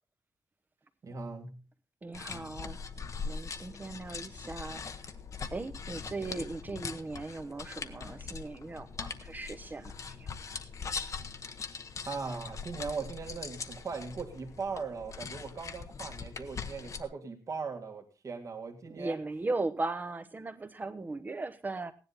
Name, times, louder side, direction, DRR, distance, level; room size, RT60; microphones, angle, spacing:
voice 1, 1.0-1.6 12.0-19.2, right 4 dB, 45° right, 2 dB, 2.0 m, -39 dB
voice 2, 2.0-2.8 3.2-4.8 5.5-9.9 10.2-10.3 18.9-21.9, right 3 dB, 25° right, 9 dB, 1.0 m, -37 dB
sound 1, 2.1-17.0, left 5 dB, 45° left, 0.9 m, -41 dB
16.5 x 10.5 x 4.1 m, 0.32 s
wide cardioid pair, 160°, 7 cm